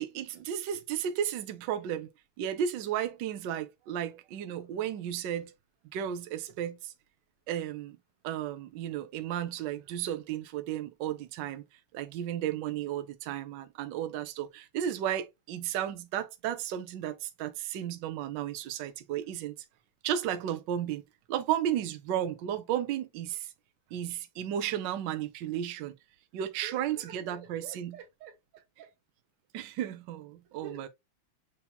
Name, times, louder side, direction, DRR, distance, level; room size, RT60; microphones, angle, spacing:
voice 1, 0.0-2.1 2.4-5.5 5.9-6.9 7.5-8.0 8.2-11.6 11.9-19.6 20.0-21.0 21.3-23.5 23.9-26.0 26.3-27.9 29.5-30.9, right 10 dB, 70° right, 1.1 m, -33 dB
voice 2, 26.6-28.9 30.6-30.9, right 6 dB, 90° right, 2.2 m, -49 dB
7.0 x 2.8 x 2.3 m
omnidirectional pair, 2.4 m